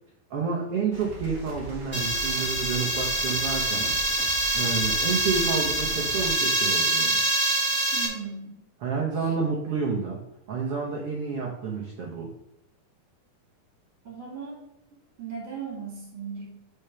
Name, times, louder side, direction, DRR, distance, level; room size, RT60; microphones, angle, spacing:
voice 1, 0.3-4.0 4.5-7.2 8.8-10.2 10.5-12.3, right 5 dB, 85° right, -2 dB, 1.2 m, -29 dB
sound 1, 0.9-6.3, right 1 dB, 50° right, 1.2 m, -40 dB
sound 2, 1.9-8.1, right 2 dB, 10° right, 1.4 m, -25 dB
voice 2, 7.9-8.6 9.1-9.4 14.0-14.6 15.2-16.5, right 6 dB, 35° right, -4 dB, 3.5 m, -38 dB
6.2 x 5.1 x 5.7 m, 0.83 s
omnidirectional pair, 4.4 m